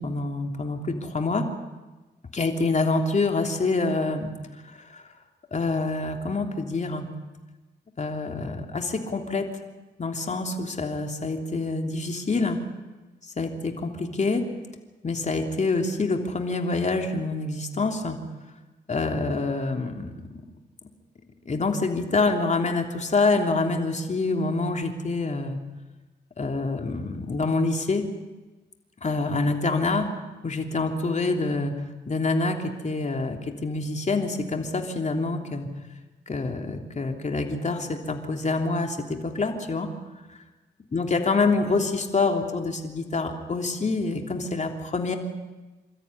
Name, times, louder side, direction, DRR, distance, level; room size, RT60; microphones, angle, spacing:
voice 1, 0.0-1.4 2.3-4.3 4.9-5.0 5.5-7.1 8.0-9.5 10.0-12.6 13.4-14.4 15.0-18.2 18.9-20.1 21.4-25.6 26.4-28.0 29.0-30.1 30.4-31.7 32.1-35.7 36.3-39.9 40.9-45.2, left 3 dB, 40° left, 3 dB, 3.2 m, -26 dB
27.5 x 13.5 x 9.8 m, 1.2 s
cardioid pair, 75°, 18 cm